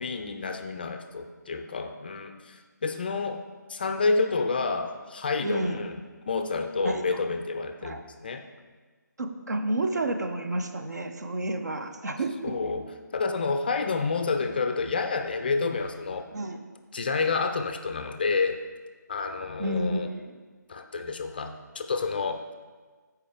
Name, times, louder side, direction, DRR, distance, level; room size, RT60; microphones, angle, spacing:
voice 1, 0.0-3.4 3.7-6.0 6.3-8.4 12.4-12.9 13.1-16.3 16.9-18.6 19.1-20.1 20.7-22.4, left 4 dB, 30° left, 7 dB, 0.4 m, -29 dB
voice 2, 5.4-5.8 6.8-7.2 7.8-8.0 9.2-12.7 16.3-16.6 19.6-20.3, right 1 dB, 60° right, 6 dB, 0.7 m, -30 dB
9.8 x 4.6 x 3.6 m, 1.4 s
figure-of-eight pair, 150°, 10 cm